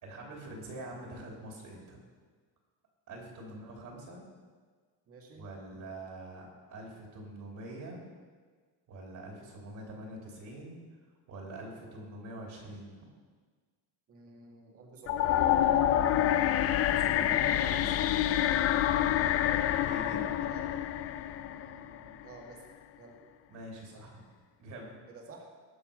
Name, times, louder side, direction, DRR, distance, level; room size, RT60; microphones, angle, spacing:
voice 1, 0.0-2.0 3.1-4.2 5.3-8.0 8.9-10.8 11.3-13.0 16.7-18.3 19.8-20.2 23.5-24.2 24.6-24.9, right 1 dB, 50° right, -1 dB, 3.0 m, -45 dB
voice 2, 3.5-4.0 5.1-5.5 14.1-15.9 19.1-19.4 20.1-20.7 21.4-22.7 23.0-23.2 25.1-25.5, right 4 dB, 35° right, 1 dB, 1.8 m, -50 dB
sound 1, 15.1-22.2, left 11 dB, 35° left, 0.4 m, -27 dB
19.5 x 7.0 x 5.0 m, 1.5 s
cardioid pair, 160°, 42 cm